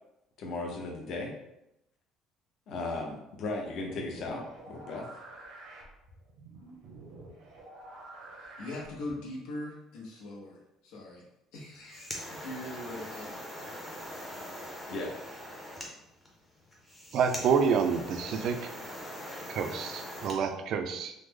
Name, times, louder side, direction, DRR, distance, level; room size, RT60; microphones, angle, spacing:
voice 1, 0.4-1.3 2.7-5.1 14.9-15.2, left 2 dB, 50° left, 1 dB, 0.6 m, -36 dB
sound 1, 3.7-9.3, right 2 dB, 90° right, 0.9 m, -49 dB
voice 2, 8.4-11.3 11.5-13.4, left 1 dB, 85° left, -2 dB, 0.7 m, -41 dB
sound 2, 11.6-20.4, equal, 5° left, 0.6 m, -42 dB
voice 3, 17.1-18.7 19.5-21.1, right 6 dB, 50° right, 6 dB, 0.3 m, -28 dB
3.1 x 2.0 x 3.5 m, 0.86 s
cardioid pair, 165°, 0 cm